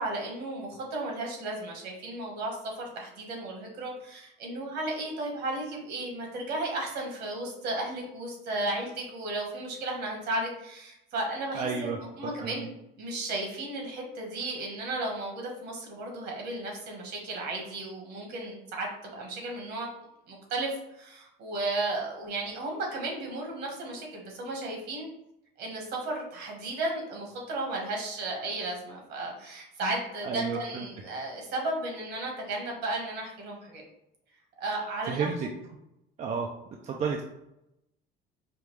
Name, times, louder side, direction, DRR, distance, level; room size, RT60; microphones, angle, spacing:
voice 1, 0.0-12.7 13.0-19.9 20.3-25.1 25.6-33.8 34.6-35.5, right 2 dB, 60° right, 0 dB, 1.3 m, -34 dB
voice 2, 11.5-12.0 12.2-12.7 30.2-30.8 35.1-35.5 36.2-36.5 36.8-37.2, right 5 dB, 40° right, 1 dB, 0.4 m, -31 dB
5.1 x 2.3 x 3.1 m, 0.85 s
cardioid pair, 140°, 19 cm